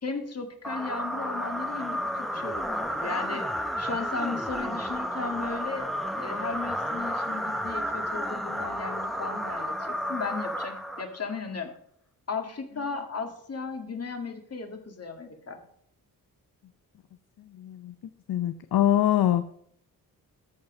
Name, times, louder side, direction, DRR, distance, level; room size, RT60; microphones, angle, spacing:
voice 1, 0.0-3.5 3.8-5.9 6.2-11.7 12.3-15.6, left 4 dB, 40° left, 5 dB, 2.0 m, -35 dB
sound 1, 0.6-11.4, equal, ahead, 1.0 m, -32 dB
voice 2, 17.5-17.9 18.3-19.4, left 12 dB, 65° left, 10 dB, 0.7 m, -24 dB
13.5 x 5.8 x 5.4 m, 0.67 s
cardioid pair, 80°, 38 cm